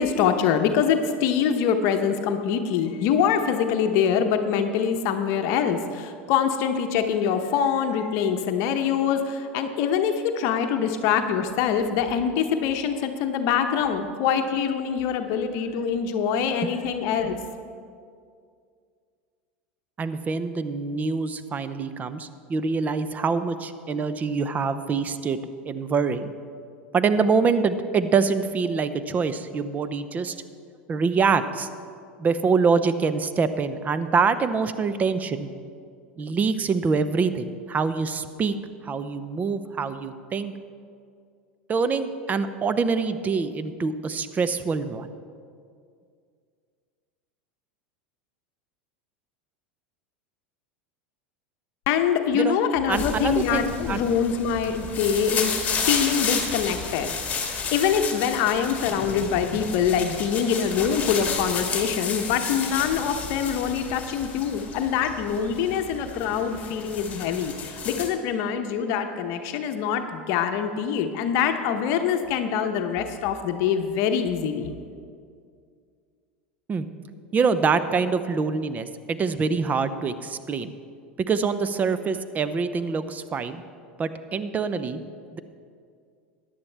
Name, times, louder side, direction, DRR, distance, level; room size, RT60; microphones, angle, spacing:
voice 1, 0.0-17.4 51.9-74.7, left 7 dB, 55° left, 6 dB, 0.8 m, -24 dB
voice 2, 20.0-25.4 25.6-26.3 26.9-30.4 30.9-31.7 32.2-35.5 36.2-38.5 38.8-40.5 41.7-45.1 52.3-52.6 52.9-54.0 76.7-76.9 77.3-80.7 81.3-83.6 84.0-85.0 85.3-85.4, right 5 dB, 25° right, 12 dB, 0.7 m, -25 dB
sound 1, 52.9-68.1, left 5 dB, 25° left, 1.9 m, -32 dB
14.0 x 10.5 x 3.4 m, 2.2 s
hypercardioid pair, 95°, 6 cm